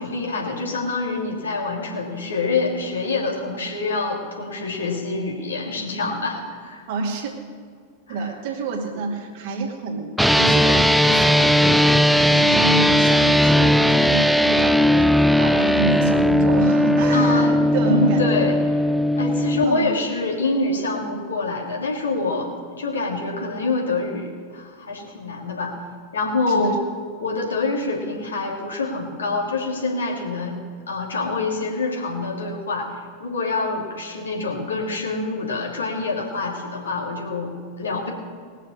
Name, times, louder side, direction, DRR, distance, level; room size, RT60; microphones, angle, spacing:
voice 1, 0.0-6.8 8.1-8.2 17.1-18.9 19.2-25.7 26.1-26.8 27.2-30.6 30.9-32.9 33.2-38.1, left 3 dB, 70° left, -2 dB, 2.7 m, -26 dB
voice 2, 6.9-7.3 8.1-18.2 19.6-19.9 26.5-26.8, right 3 dB, 50° right, 1 dB, 2.3 m, -28 dB
sound 1, 10.2-19.6, equal, ahead, 0.4 m, -17 dB
20.0 x 6.8 x 6.6 m, 2.1 s
figure-of-eight pair, 90°, 0 cm